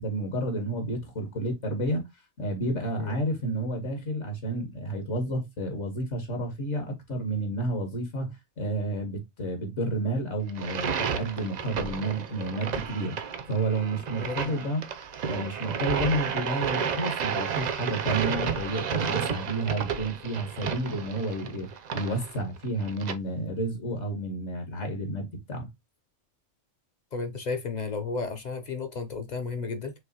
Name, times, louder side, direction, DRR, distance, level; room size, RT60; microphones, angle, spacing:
voice 1, 0.0-2.0 2.4-13.2 13.5-14.8 15.3-25.7, right 1 dB, 65° left, 1.5 m, -31 dB
sound 1, 10.5-23.1, right 7 dB, 80° right, 0.3 m, -32 dB
voice 2, 14.2-14.5 27.1-29.9, left 4 dB, 50° left, 0.6 m, -33 dB
6.1 x 2.6 x 2.7 m
omnidirectional pair, 1.3 m